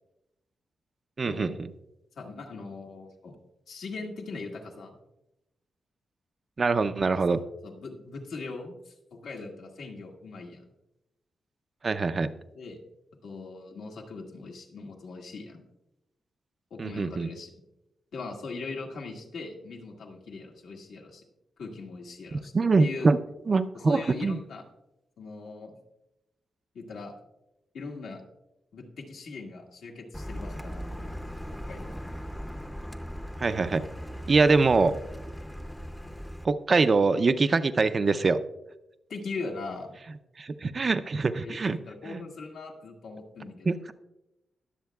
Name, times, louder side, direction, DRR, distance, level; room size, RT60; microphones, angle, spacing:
voice 1, 1.2-1.7 6.6-7.4 11.8-12.3 16.8-17.3 22.5-23.2 23.5-24.4 33.4-33.8 34.3-35.0 36.4-38.4 40.4-41.8 42.1-42.2 43.7-43.8, right 4 dB, 35° right, 11 dB, 0.4 m, -24 dB
voice 2, 2.2-3.3 3.7-4.9 7.0-7.2 7.6-10.7 12.6-12.8 13.2-15.6 16.7-17.5 18.1-21.3 21.6-22.5 22.8-23.1 23.7-24.6 25.2-25.8 26.7-27.1 27.7-28.2 28.7-31.4 31.7-31.9 39.1-40.0 41.4-43.8, left 3 dB, 85° left, 0 dB, 1.9 m, -40 dB
Car, 30.1-36.4, equal, 5° left, 0.6 m, -39 dB
21.0 x 7.4 x 2.3 m, 0.90 s
wide cardioid pair, 155°, 0 cm